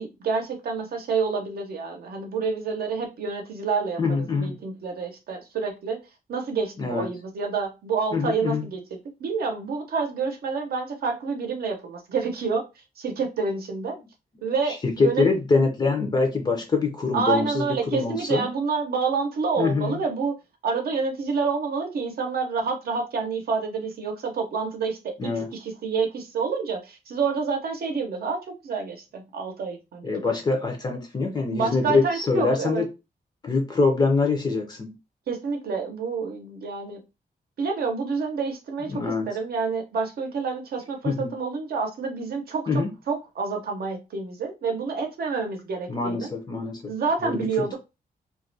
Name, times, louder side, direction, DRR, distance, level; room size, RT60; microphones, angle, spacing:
voice 1, 0.0-4.0 4.4-6.0 6.3-8.8 9.2-12.6 13.0-14.0 14.4-15.3 17.1-20.3 20.6-25.3 25.6-30.1 31.5-32.8 35.3-37.0 37.6-42.6 43.1-46.3 46.9-47.8, right 5 dB, 85° right, 3 dB, 0.6 m, -28 dB
voice 2, 4.0-4.6 6.8-7.1 8.1-8.7 14.7-18.5 19.6-20.0 25.2-25.5 30.0-32.9 33.4-34.9 38.9-39.4 41.0-41.3 42.7-42.9 45.9-46.9 47.2-47.5, left 4 dB, 25° left, 4 dB, 0.4 m, -24 dB
2.3 x 2.1 x 2.5 m, 0.26 s
wide cardioid pair, 175°, 16 cm